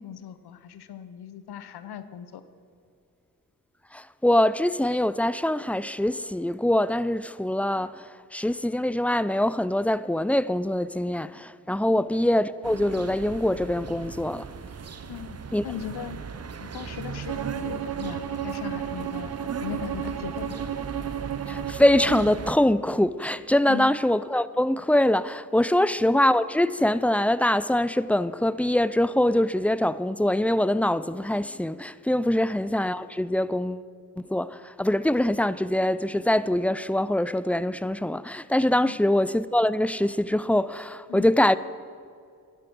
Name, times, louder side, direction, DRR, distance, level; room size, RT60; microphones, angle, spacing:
voice 1, 0.0-2.4 11.9-12.0 15.0-15.4 15.6-16.2 16.5-19.3 19.6-20.6 23.7-23.9 25.8-25.9 38.8-38.9 41.1-41.3, left 9 dB, 85° left, 0.8 m, -38 dB
voice 2, 3.9-14.5 15.5-15.6 21.5-33.9 34.2-41.6, left 1 dB, 5° left, 0.4 m, -24 dB
sound 1, 12.6-22.5, right 6 dB, 40° right, 0.8 m, -38 dB
Bowed string instrument, 17.3-22.4, right 9 dB, 70° right, 0.9 m, -33 dB
11.5 x 11.0 x 6.1 m
cardioid pair, 50°, 38 cm